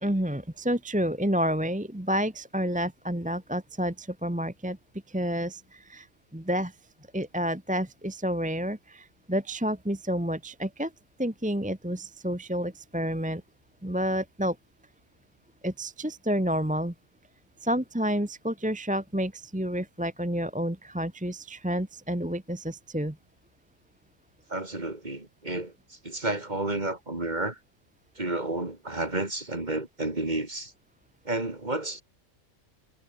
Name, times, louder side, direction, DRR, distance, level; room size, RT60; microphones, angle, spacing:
voice 1, 0.0-4.8 5.1-6.1 6.3-6.7 7.1-10.9 11.2-13.4 13.8-14.6 15.6-16.9 17.6-23.2, equal, 5° right, 1.2 m, -29 dB
voice 2, 24.5-27.6 28.1-30.7 31.2-32.0, right 2 dB, 30° right, 3.3 m, -31 dB
omnidirectional pair, 1.4 m